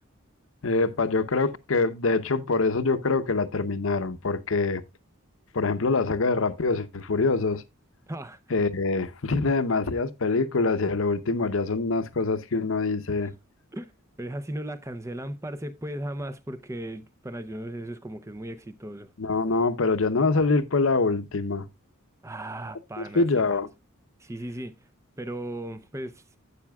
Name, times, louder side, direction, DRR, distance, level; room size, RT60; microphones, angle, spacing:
voice 1, 0.6-4.8 5.5-7.6 8.5-13.3 19.2-21.6 23.0-23.7, left 3 dB, 65° left, 0.8 m, -25 dB
voice 2, 8.1-8.4 13.2-13.3 13.7-13.9 14.2-19.1 22.2-23.3 24.2-24.8 25.2-26.2, right 1 dB, 15° right, 0.6 m, -36 dB
12.0 x 8.5 x 2.3 m
head